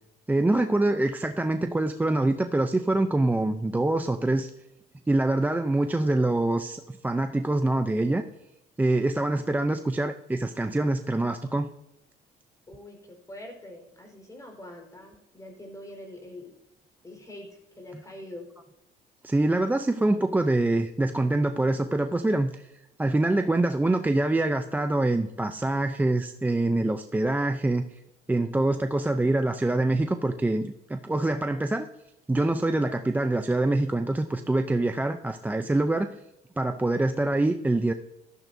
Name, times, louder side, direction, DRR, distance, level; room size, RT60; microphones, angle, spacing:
voice 1, 0.3-4.5 5.1-8.2 8.8-11.7 19.2-22.7 23.0-27.8 28.3-31.9 32.3-36.1 36.6-37.9, right 2 dB, 10° right, 7 dB, 0.5 m, -25 dB
voice 2, 12.7-16.5 17.0-18.5, left 1 dB, 20° left, 2 dB, 4.4 m, -44 dB
15.5 x 12.0 x 2.7 m, 0.86 s
cardioid pair, 110°, 17 cm